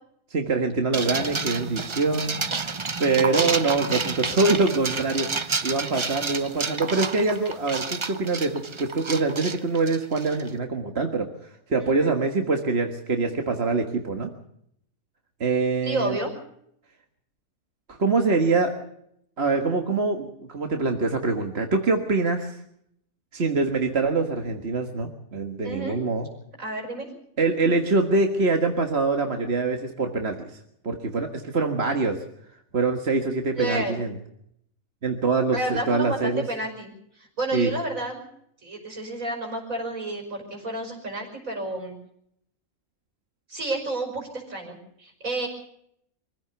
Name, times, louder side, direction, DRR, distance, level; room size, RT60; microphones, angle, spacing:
voice 1, 0.3-2.4 3.0-5.3 5.6-11.3 11.7-14.3 15.4-16.2 17.9-18.7 19.4-22.6 23.3-26.3 27.4-30.6 30.8-32.2 32.7-34.1 35.0-36.4 37.5-37.7, right 3 dB, 45° right, 4 dB, 1.8 m, -24 dB
sound 1, 0.9-10.5, right 4 dB, 25° right, 0.7 m, -30 dB
voice 2, 11.8-12.1 15.8-16.3 25.6-26.0 26.6-27.1 33.5-34.0 35.5-38.2 38.6-41.9 43.5-45.5, right 2 dB, 65° right, 3 dB, 5.9 m, -30 dB
24.0 x 15.5 x 6.9 m, 0.73 s
omnidirectional pair, 1.5 m